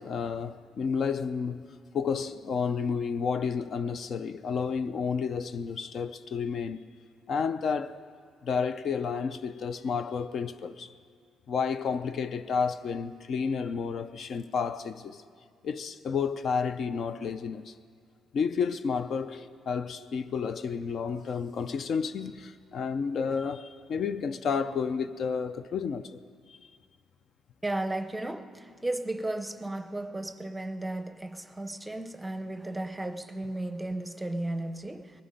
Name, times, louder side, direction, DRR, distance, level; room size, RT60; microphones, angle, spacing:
voice 1, 0.0-1.7 1.9-6.8 7.3-8.0 8.4-10.9 11.5-15.2 15.6-17.7 18.3-26.2 26.5-26.6, left 6 dB, 55° left, 0.4 m, -31 dB
voice 2, 27.6-35.2, right 1 dB, 10° right, 0.7 m, -34 dB
19.5 x 11.5 x 5.2 m
cardioid pair, 105°, 0 cm